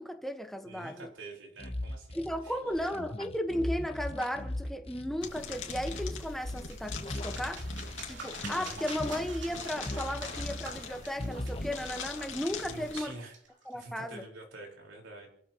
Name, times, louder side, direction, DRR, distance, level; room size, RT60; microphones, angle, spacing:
voice 1, 0.0-1.1 2.1-7.6 8.1-13.1 13.6-14.2, equal, ahead, 1.4 m, -35 dB
voice 2, 0.6-2.7 12.7-13.4 13.7-15.3, right 2 dB, 90° right, 5.1 m, -47 dB
sound 1, 1.6-8.1 8.4-10.9 11.2-12.3, left 1 dB, 30° left, 1.2 m, -39 dB
sound 2, 5.2-13.0, left 6 dB, 80° left, 2.5 m, -43 dB
sound 3, 6.2-13.7, right 4 dB, 65° right, 3.5 m, -47 dB
28.0 x 13.5 x 3.1 m
head